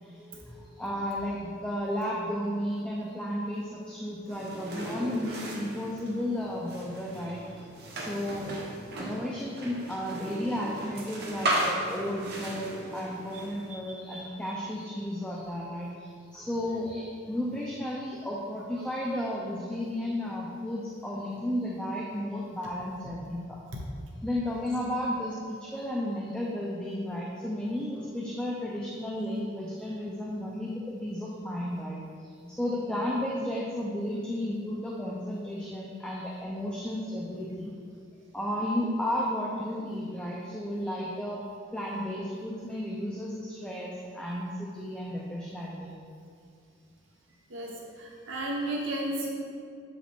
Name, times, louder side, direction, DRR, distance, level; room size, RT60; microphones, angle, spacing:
voice 1, 0.0-7.6 7.9-8.6 9.0-23.6 24.2-37.7 38.3-41.4 41.7-45.9, left 1 dB, 5° left, -4 dB, 0.5 m, -33 dB
sound 1, 4.3-13.7, right 1 dB, 55° right, 1.0 m, -36 dB
voice 2, 48.0-49.3, right 1 dB, 75° right, -2 dB, 1.0 m, -33 dB
7.0 x 4.8 x 3.6 m, 2.3 s
head